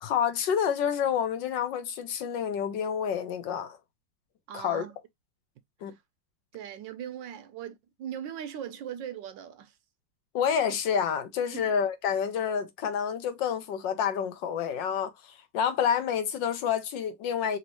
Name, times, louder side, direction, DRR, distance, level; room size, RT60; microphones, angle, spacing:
voice 1, 0.0-3.8 4.5-4.8 5.8-5.9 10.3-17.6, left 8 dB, 80° left, 1.5 m, -28 dB
voice 2, 4.5-5.0 5.9-6.0 6.5-9.8 11.5-11.7, right 9 dB, 85° right, 1.4 m, -39 dB
4.2 x 2.7 x 2.9 m
omnidirectional pair, 2.0 m